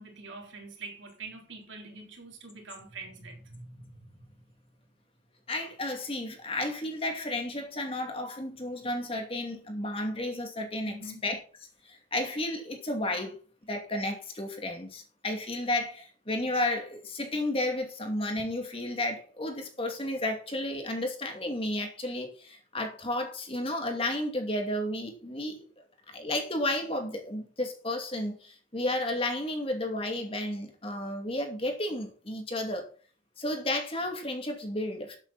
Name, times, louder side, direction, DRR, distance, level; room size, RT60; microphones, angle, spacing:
voice 1, 0.0-3.9 10.9-11.3, right 3 dB, 75° right, 3.7 m, -45 dB
voice 2, 5.5-11.4 11.8-13.4 13.7-25.6 26.1-32.8 33.4-35.2, left 1 dB, 30° left, 2.5 m, -32 dB
12.5 x 8.2 x 4.2 m
head